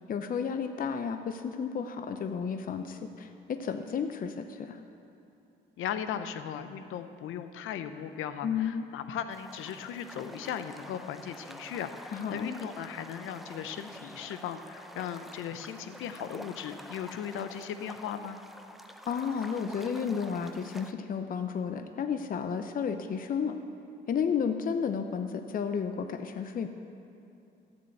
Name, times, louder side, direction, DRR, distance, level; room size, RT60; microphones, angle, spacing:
voice 1, 0.1-4.8 8.4-8.9 12.1-12.6 14.0-14.1 19.1-23.6 24.1-26.7, left 6 dB, 45° left, 7 dB, 0.6 m, -32 dB
voice 2, 5.8-18.4, left 9 dB, 85° left, 10 dB, 0.7 m, -37 dB
sound 1, 9.3-20.9, equal, ahead, 0.6 m, -48 dB
12.5 x 7.0 x 7.8 m, 2.7 s
cardioid pair, 90°, 20 cm